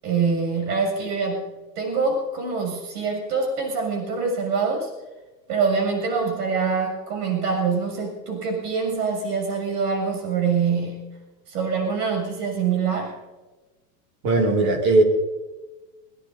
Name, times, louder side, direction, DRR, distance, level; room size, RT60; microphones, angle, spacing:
voice 1, 0.0-4.9 5.5-11.0 11.5-13.1, right 5 dB, 75° right, 2 dB, 7.2 m, -25 dB
voice 2, 14.2-15.0, right 2 dB, 40° right, 3 dB, 2.5 m, -18 dB
22.5 x 20.5 x 2.7 m, 1.2 s
supercardioid pair, 165°, 47 cm